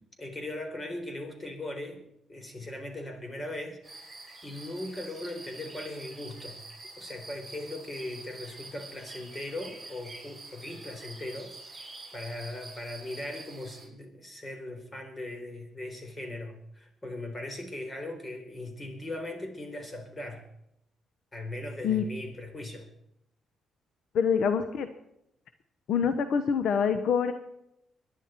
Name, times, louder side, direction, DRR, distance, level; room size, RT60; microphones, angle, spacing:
voice 1, 0.2-2.0 2.3-6.6 7.0-11.5 12.1-20.5 21.3-22.9, left 1 dB, 25° left, 5 dB, 3.9 m, -39 dB
sound 1, 3.8-13.9, right 2 dB, 10° right, 7.5 m, -47 dB
voice 2, 24.1-24.9 25.9-27.3, left 7 dB, 70° left, 10 dB, 0.9 m, -25 dB
23.5 x 10.5 x 4.5 m, 0.79 s
cardioid pair, 90°, 0 cm